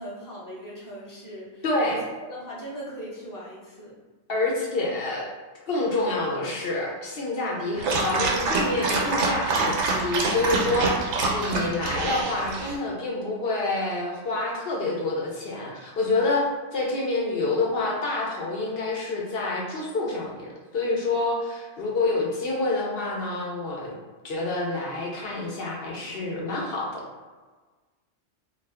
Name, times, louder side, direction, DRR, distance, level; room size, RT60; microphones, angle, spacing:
voice 1, 0.0-2.0 2.3-4.0, equal, 20° left, -6 dB, 0.6 m, -39 dB
voice 2, 1.6-2.0 4.3-5.3 5.7-23.9 24.2-27.0, left 2 dB, 60° left, -2 dB, 0.8 m, -27 dB
Dog, 7.8-12.8, right 3 dB, 80° right, 0.9 m, -26 dB
2.7 x 2.4 x 3.3 m, 1.3 s
omnidirectional pair, 1.2 m